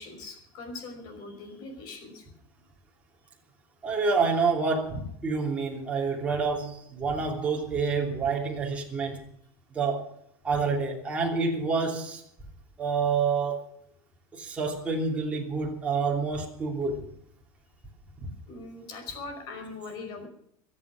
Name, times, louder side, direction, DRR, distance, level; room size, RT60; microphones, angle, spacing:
voice 1, 0.0-2.3 13.9-14.0 18.5-20.3, left 3 dB, 40° left, 5 dB, 5.3 m, -41 dB
voice 2, 3.8-9.3 9.7-10.1 10.4-12.2 12.8-13.7 14.3-17.0 18.2-18.3, right 4 dB, 10° right, -1 dB, 3.1 m, -28 dB
23.5 x 8.6 x 6.3 m, 0.69 s
cardioid pair, 180°, 10 cm